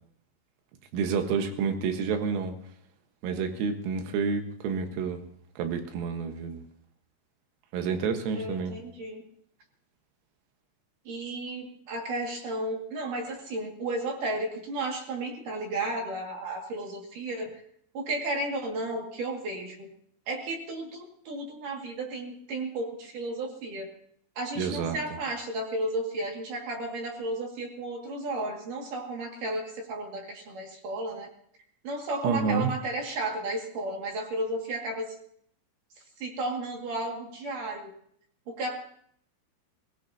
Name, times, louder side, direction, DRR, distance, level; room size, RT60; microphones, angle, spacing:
voice 1, 0.9-2.6 3.2-5.2 5.6-6.6 7.7-8.7 24.6-25.0 32.2-32.7, right 5 dB, 80° right, 6 dB, 4.0 m, -29 dB
voice 2, 8.3-9.3 11.1-17.6 17.9-19.9 20.3-23.9 24.4-31.3 31.8-35.1 36.2-38.0 38.5-38.8, right 2 dB, 50° right, 1 dB, 2.9 m, -33 dB
22.5 x 18.5 x 2.8 m, 0.65 s
omnidirectional pair, 6.0 m